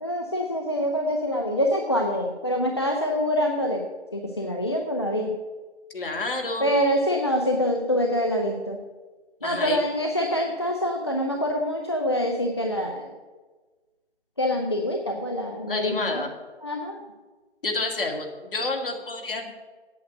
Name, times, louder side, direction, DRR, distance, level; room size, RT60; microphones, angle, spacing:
voice 1, 0.0-3.8 4.1-5.3 6.6-8.8 9.4-13.1 14.4-16.2 16.6-17.0, equal, 25° left, 1 dB, 0.5 m, -25 dB
voice 2, 5.9-6.7 9.4-9.8 15.7-16.3 17.6-19.7, left 3 dB, 50° left, 2 dB, 2.0 m, -29 dB
8.5 x 7.8 x 7.6 m, 1.3 s
figure-of-eight pair, 155°, 34 cm